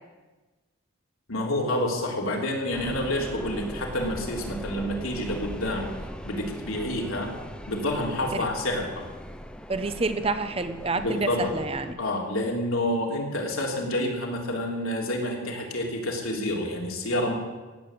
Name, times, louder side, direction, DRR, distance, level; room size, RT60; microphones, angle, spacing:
voice 1, 1.3-5.9 6.2-7.3 7.7-9.1 11.0-11.5 12.0-17.3, left 1 dB, 80° left, 0 dB, 3.2 m, -28 dB
sound 1, 2.7-11.9, equal, 5° left, 0.8 m, -39 dB
voice 2, 9.7-12.0, right 3 dB, 25° right, 10 dB, 0.7 m, -28 dB
16.5 x 8.7 x 7.8 m, 1.3 s
head